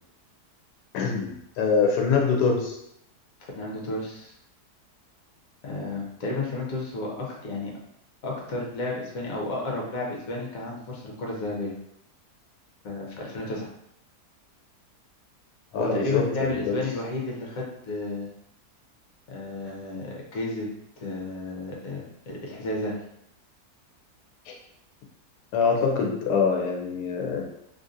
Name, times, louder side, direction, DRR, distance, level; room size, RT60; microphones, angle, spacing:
voice 1, 0.9-2.8 15.7-16.8 24.5-24.6 25.5-27.4, left 5 dB, 90° left, 0 dB, 1.2 m, -24 dB
voice 2, 3.6-4.3 5.6-7.1 7.4-7.7 8.2-11.7 12.8-13.7 15.8-18.3 19.3-20.7 21.0-23.0, left 2 dB, 65° left, -2 dB, 1.2 m, -32 dB
3.4 x 2.6 x 2.5 m, 0.77 s
omnidirectional pair, 1.7 m